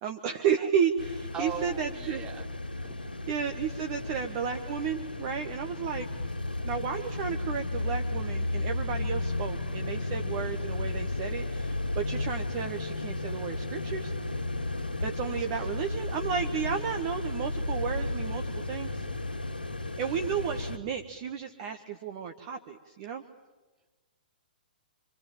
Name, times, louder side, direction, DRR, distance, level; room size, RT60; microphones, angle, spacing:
voice 1, 0.0-2.2 3.3-6.1 6.6-14.1 15.0-19.1 20.0-23.2, right 7 dB, 35° right, 5 dB, 1.7 m, -32 dB
sound 1, 1.0-20.8, left 2 dB, 85° left, 2.5 m, -34 dB
voice 2, 1.3-2.5 2.8-3.1 4.1-4.2 15.5-15.8 20.5-20.6, right 6 dB, 15° right, 1 dB, 3.4 m, -40 dB
28.5 x 25.0 x 7.5 m, 1.2 s
figure-of-eight pair, 115°, 5 cm